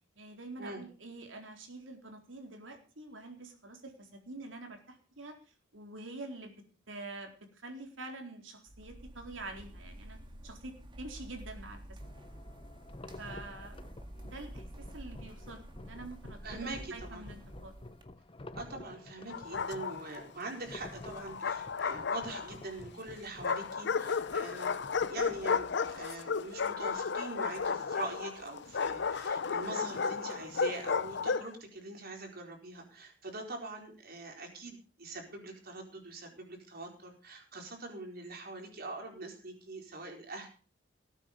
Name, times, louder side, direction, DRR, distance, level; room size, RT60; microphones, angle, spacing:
voice 1, 0.2-5.3 5.7-6.5 6.9-10.2 10.4-11.8 12.2-12.3 13.2-13.7 14.2-17.7, right 2 dB, 85° right, 3 dB, 4.0 m, -46 dB
sound 1, 8.7-18.0, right 1 dB, 25° right, 1.9 m, -49 dB
sound 2, 12.0-25.5, left 2 dB, 30° left, 0.9 m, -51 dB
voice 2, 16.4-17.2 18.5-40.6, right 2 dB, 55° right, 2 dB, 4.6 m, -43 dB
Bark, 19.3-20.2 21.1-22.7 23.4-31.5, left 5 dB, 65° left, 0.7 m, -33 dB
19.0 x 9.1 x 5.4 m, 0.38 s
head